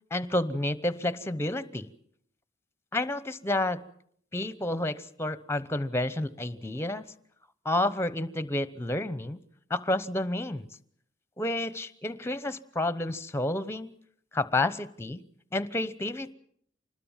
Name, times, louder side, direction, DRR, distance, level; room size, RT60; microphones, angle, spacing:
voice 1, 0.1-1.9 2.9-3.8 4.3-7.0 7.6-9.4 9.7-10.7 11.4-13.9 14.3-15.2 15.5-16.3, left 1 dB, 15° left, 15 dB, 0.9 m, -30 dB
26.0 x 20.5 x 7.4 m, 0.65 s
head